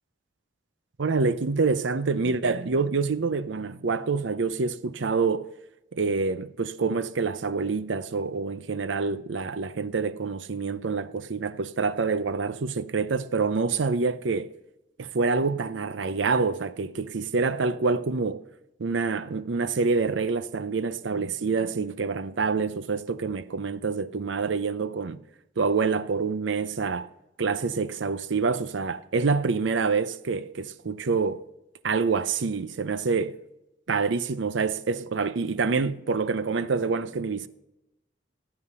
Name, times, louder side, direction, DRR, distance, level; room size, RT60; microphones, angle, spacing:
voice 1, 1.0-5.5 5.9-14.5 15.0-18.4 18.8-25.2 25.6-27.1 27.4-31.4 31.8-33.4 33.9-37.5, right 4 dB, 80° right, 0.6 m, -26 dB
17.0 x 8.0 x 5.5 m
head